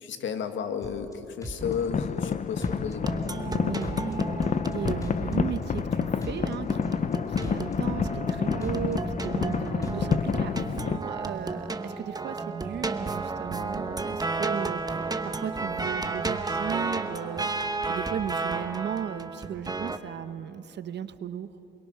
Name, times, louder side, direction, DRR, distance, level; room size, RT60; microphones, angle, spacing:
voice 1, 0.0-3.1, left 7 dB, 70° left, 7 dB, 1.8 m, -33 dB
sound 1, 0.8-1.1 1.4-2.3 2.6-3.5 3.8-4.7 5.0-5.9 6.2-7.1 7.4-8.3 8.6-9.5 9.8-10.4, equal, 15° left, 2.9 m, -39 dB
sound 2, 1.6-11.0, left 6 dB, 40° left, 0.7 m, -29 dB
sound 3, 3.0-20.0, right 3 dB, 20° right, 1.1 m, -33 dB
voice 2, 3.4-21.5, right 8 dB, 60° right, 12 dB, 1.0 m, -36 dB
27.5 x 22.0 x 5.8 m, 2.9 s
cardioid pair, 90°, 20 cm